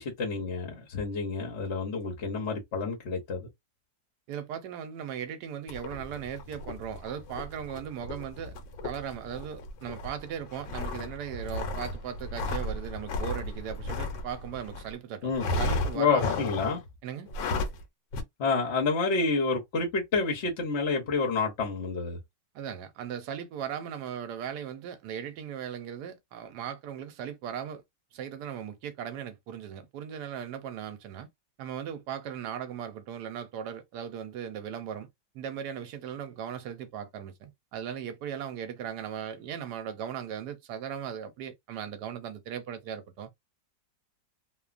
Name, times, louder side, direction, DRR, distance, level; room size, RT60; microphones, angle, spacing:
voice 1, 0.0-3.5 15.2-15.4 15.9-16.8 18.4-22.2, left 4 dB, 50° left, 0.9 m, -29 dB
voice 2, 4.3-8.6 8.8-16.4 17.0-17.3 22.5-27.8 28.1-31.3 31.6-35.1 35.3-43.4, right 8 dB, 70° right, 1.2 m, -38 dB
sound 1, 5.7-14.9 15.4-16.8 17.3-17.8 18.1-18.2, left 2 dB, 80° left, 1.3 m, -34 dB
3.1 x 2.2 x 2.4 m
omnidirectional pair, 2.0 m